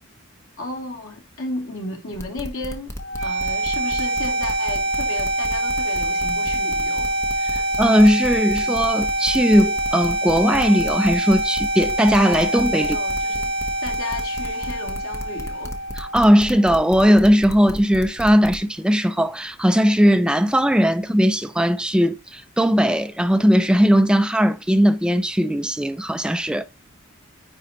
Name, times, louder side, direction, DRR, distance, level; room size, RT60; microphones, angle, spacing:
voice 1, 0.6-2.9 3.2-7.1 7.5-7.6 12.8-13.5 13.8-15.8, left 2 dB, 85° left, 2.8 m, -34 dB
sound 1, 2.1-18.6, equal, 15° left, 1.0 m, -33 dB
sound 2, 3.0-17.0, right 1 dB, 70° left, 3.4 m, -25 dB
voice 2, 7.8-13.0 16.0-26.6, equal, 5° right, 0.3 m, -18 dB
9.7 x 4.4 x 2.9 m
head